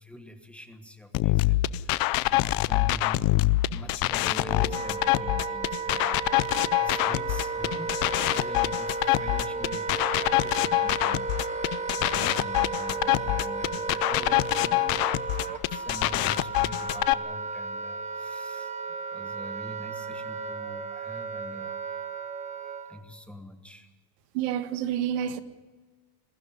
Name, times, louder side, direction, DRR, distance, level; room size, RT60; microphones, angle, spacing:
voice 1, 0.0-18.7 19.1-21.8 22.8-23.9, left 1 dB, ahead, 1.3 m, -45 dB
sound 1, 1.1-17.1, left 19 dB, 45° left, 0.6 m, -25 dB
Wind instrument woodwind instrument, 4.2-23.0, right 4 dB, 15° right, 0.8 m, -34 dB
voice 2, 24.3-25.4, right 10 dB, 80° right, 1.7 m, -28 dB
21.5 x 15.5 x 10.0 m
cardioid pair, 160°, 48 cm